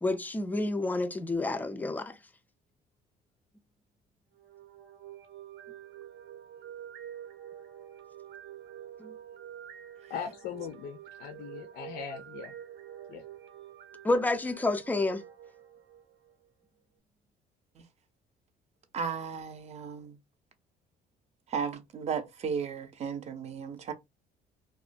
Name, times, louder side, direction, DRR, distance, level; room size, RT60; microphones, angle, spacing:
voice 1, 0.0-2.1 9.0-9.1 14.0-15.2, left 2 dB, 10° left, 0.3 m, -29 dB
sound 1, 4.3-16.5, right 10 dB, 80° right, 0.6 m, -47 dB
voice 2, 10.1-12.6 13.1-13.2, left 7 dB, 75° left, 0.5 m, -40 dB
voice 3, 18.9-20.2 21.5-23.9, right 6 dB, 40° right, 0.5 m, -35 dB
2.3 x 2.1 x 2.5 m
cardioid pair, 110°, 17 cm